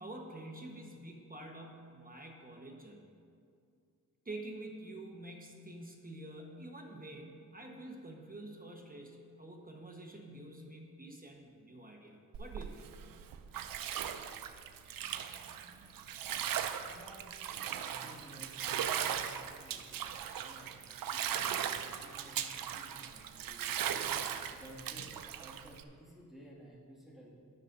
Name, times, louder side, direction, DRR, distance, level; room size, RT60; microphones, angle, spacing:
voice 1, 0.0-3.0 4.2-12.9 15.1-16.4, right 1 dB, 25° right, 1 dB, 1.1 m, -48 dB
Bathtub (filling or washing), 12.3-25.8, right 9 dB, 85° right, 0.5 m, -38 dB
voice 2, 16.9-17.3 17.5-24.1 24.4-27.3, right 1 dB, ahead, -7 dB, 2.1 m, -55 dB
18.0 x 6.6 x 2.6 m, 2.3 s
cardioid pair, 65°, 33 cm